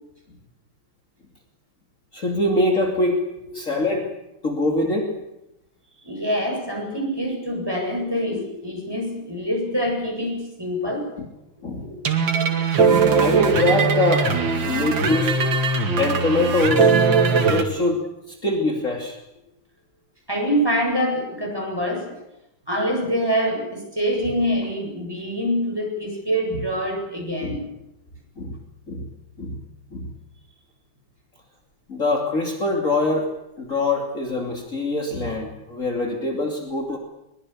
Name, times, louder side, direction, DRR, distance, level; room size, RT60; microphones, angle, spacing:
voice 1, 2.1-3.3 3.5-4.1 4.4-5.1 11.6-11.9 13.1-14.3 14.7-15.4 15.9-17.0 17.4-19.2 27.4-27.6 28.4-28.6 28.9-29.1 29.4-29.6 29.9-30.1 31.9-33.3 33.6-37.0, left 2 dB, 40° left, 1 dB, 3.2 m, -23 dB
voice 2, 6.0-11.1 11.7-11.9 20.3-22.1 22.7-27.6, equal, 10° right, 1 dB, 7.9 m, -25 dB
sound 1, 12.0-17.6, right 5 dB, 70° right, 3.0 m, -20 dB
23.0 x 22.5 x 8.6 m, 0.89 s
omnidirectional pair, 2.1 m